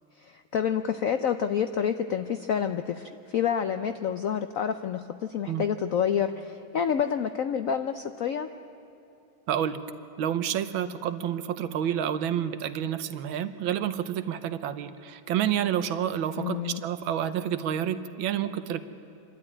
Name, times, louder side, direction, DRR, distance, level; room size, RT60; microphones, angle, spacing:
voice 1, 0.2-8.5 16.4-16.8, left 8 dB, 80° left, 9 dB, 0.7 m, -28 dB
voice 2, 9.5-9.8 10.2-18.8, right 10 dB, 90° right, 11 dB, 1.6 m, -29 dB
26.5 x 12.5 x 9.7 m, 2.7 s
omnidirectional pair, 2.2 m